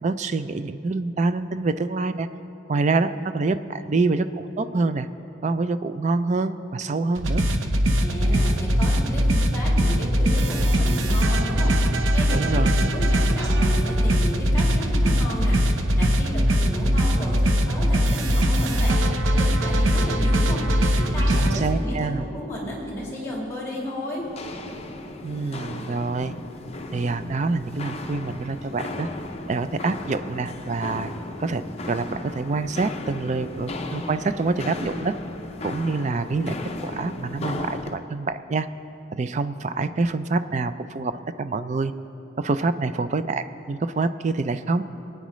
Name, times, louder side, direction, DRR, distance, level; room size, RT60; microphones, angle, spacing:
voice 1, 0.0-2.3 2.7-5.1 5.4-7.4 12.3-12.7 21.3-22.2 25.2-26.3 26.9-29.1 29.5-31.1 31.4-31.6 31.9-35.1 35.6-36.6 36.8-38.7 39.1-41.9 42.4-44.8, right 3 dB, 35° right, 12 dB, 0.4 m, -26 dB
sound 1, 7.2-21.6, equal, 75° right, 0.8 m, -21 dB
voice 2, 8.0-11.7 12.1-15.7 16.0-24.2, equal, 15° left, -5 dB, 2.6 m, -33 dB
Walk footsteps, 24.2-38.0, left 2 dB, 30° left, 0.6 m, -35 dB
22.5 x 9.2 x 3.1 m, 2.9 s
head